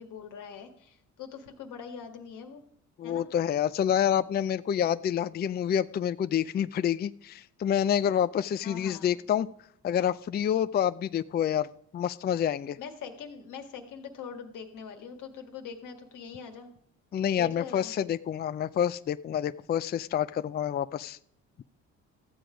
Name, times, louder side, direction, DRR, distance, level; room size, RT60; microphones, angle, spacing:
voice 1, 0.0-2.6 3.0-3.3 8.6-9.2 12.8-16.7 17.4-18.1, left 6 dB, 85° left, 5 dB, 1.7 m, -43 dB
voice 2, 3.0-9.5 9.8-11.7 11.9-12.8 17.1-21.2, left 9 dB, 35° left, 15 dB, 0.4 m, -28 dB
13.5 x 7.8 x 5.0 m, 0.69 s
cardioid pair, 90°, 30 cm